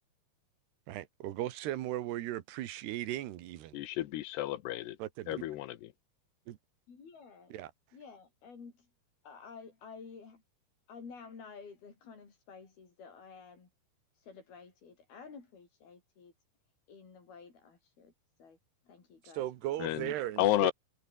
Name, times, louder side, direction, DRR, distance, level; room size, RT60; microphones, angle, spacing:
voice 1, 0.9-3.8 5.0-5.5 6.5-6.6 7.5-7.7 19.3-20.7, right 14 dB, 85° right, 3.4 m, -37 dB
voice 2, 3.7-5.0 5.3-5.8 19.8-20.1 20.4-20.7, left 15 dB, 85° left, 3.3 m, -31 dB
voice 3, 6.9-7.6 7.9-8.9 9.2-10.4 10.9-13.7 14.2-16.3 16.9-18.1 18.4-18.6 18.9-19.9, left 5 dB, 70° left, 7.4 m, -51 dB
omnidirectional pair, 4.6 m